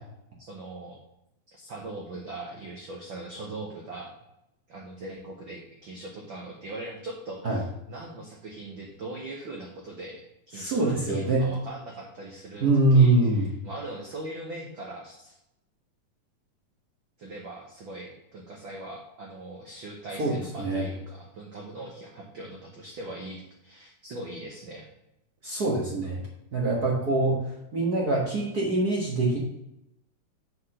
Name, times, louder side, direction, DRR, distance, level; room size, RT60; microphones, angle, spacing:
voice 1, 0.4-1.0 1.5-4.1 4.7-15.4 17.2-24.9, right 2 dB, 80° right, 0 dB, 1.0 m, -40 dB
voice 2, 10.5-11.4 12.6-13.5 20.2-20.9 25.4-26.2 26.5-27.4 27.7-29.4, right 2 dB, 55° right, -3 dB, 1.0 m, -23 dB
6.9 x 4.8 x 6.3 m, 0.85 s
omnidirectional pair, 3.8 m